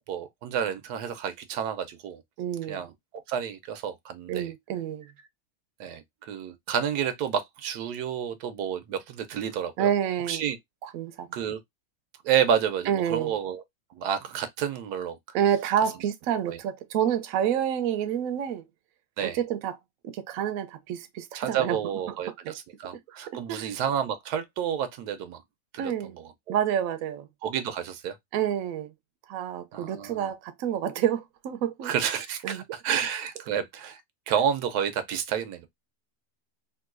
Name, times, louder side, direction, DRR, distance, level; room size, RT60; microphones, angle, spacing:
voice 1, 0.1-2.2 2.7-2.9 3.3-4.5 5.8-9.9 10.3-10.6 11.3-11.6 12.2-13.6 13.9-15.2 16.5-16.6 19.2-19.4 21.3-25.4 25.7-26.6 27.4-28.2 29.7-30.3 31.8-34.0 34.3-35.7, right 8 dB, 90° right, 1.2 m, -30 dB
voice 2, 2.4-2.8 4.3-5.1 9.8-10.5 10.8-11.4 12.9-13.3 15.3-18.6 19.2-19.8 20.0-21.8 22.4-22.6 23.3-23.7 25.8-26.1 26.5-27.3 28.3-28.9 29.3-31.9 32.4-32.6, right 9 dB, 70° right, 0.9 m, -28 dB
3.8 x 2.6 x 2.3 m
omnidirectional pair, 1.6 m